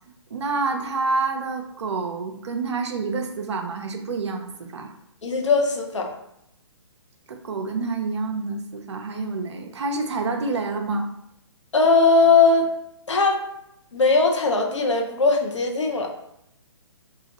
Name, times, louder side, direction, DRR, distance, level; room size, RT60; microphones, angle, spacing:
voice 1, 0.3-4.9 7.3-11.1, right 3 dB, 70° right, 3 dB, 0.6 m, -28 dB
voice 2, 5.2-6.1 11.7-12.7 13.1-13.4 13.9-16.1, left 3 dB, 85° left, 3 dB, 0.7 m, -19 dB
3.0 x 2.8 x 2.9 m, 0.79 s
hypercardioid pair, 135°, 15 cm